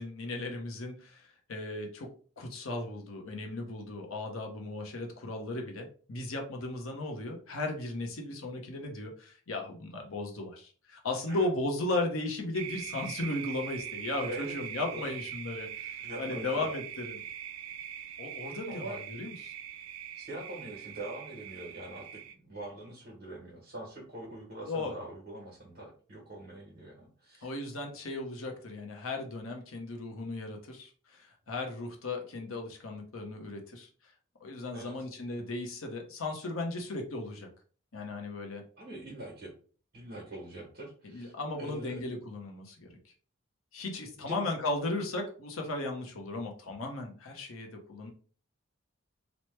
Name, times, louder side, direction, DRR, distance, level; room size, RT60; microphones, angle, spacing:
voice 1, 0.0-2.1 2.4-17.2 18.2-19.5 24.7-24.9 27.4-33.9 34.4-37.5 37.9-38.6 41.0-42.9 43.7-48.1, left 2 dB, 85° left, 2 dB, 0.7 m, -36 dB
sound 1, 12.5-22.3, right 9 dB, 85° right, 0.3 m, -42 dB
voice 2, 14.2-14.6 14.9-15.1 16.0-16.7 18.7-19.0 20.1-27.5 34.7-35.0 38.8-39.5 39.9-41.3 41.6-42.0 44.2-44.5, right 1 dB, 50° right, -3 dB, 1.1 m, -43 dB
3.0 x 2.1 x 3.2 m, 0.41 s
head